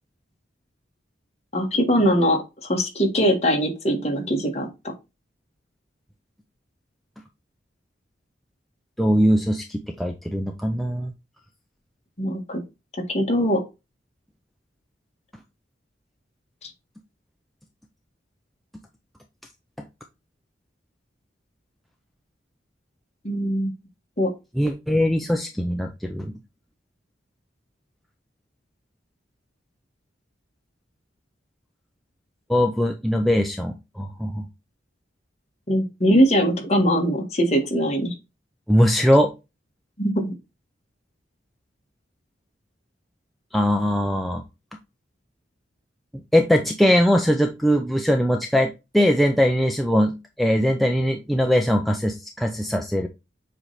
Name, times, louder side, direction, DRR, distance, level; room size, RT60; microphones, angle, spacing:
voice 1, 1.5-4.7 12.2-12.6 13.1-13.6 16.6-16.7 23.2-23.7 24.2-24.3 35.7-38.2 40.0-40.1, equal, 35° left, 2 dB, 1.7 m, -21 dB
voice 2, 9.0-11.1 24.6-26.3 32.5-34.5 38.7-39.3 43.5-44.4 46.3-53.1, equal, ahead, 2 dB, 0.5 m, -21 dB
7.5 x 3.3 x 4.1 m, 0.25 s
head